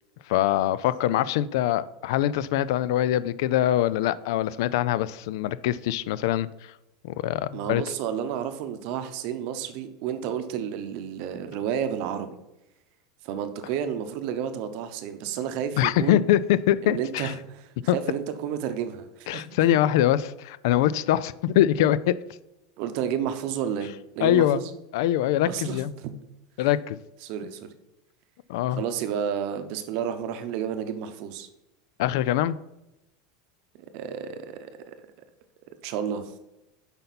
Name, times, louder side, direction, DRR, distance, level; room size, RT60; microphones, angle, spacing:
voice 1, 0.3-6.7 7.0-7.8 15.8-17.3 17.9-18.0 19.3-22.1 24.2-24.6 24.9-25.9 26.6-27.0 28.5-28.8 32.0-32.6, left 12 dB, 65° left, 0.3 m, -23 dB
voice 2, 7.5-12.4 13.2-16.2 16.8-17.6 17.9-19.5 22.8-24.7 25.5-26.1 27.2-27.7 28.7-31.5 33.9-34.9 35.8-36.3, right 8 dB, 50° right, 0.8 m, -31 dB
8.0 x 5.4 x 4.1 m
supercardioid pair, 165°, 2 cm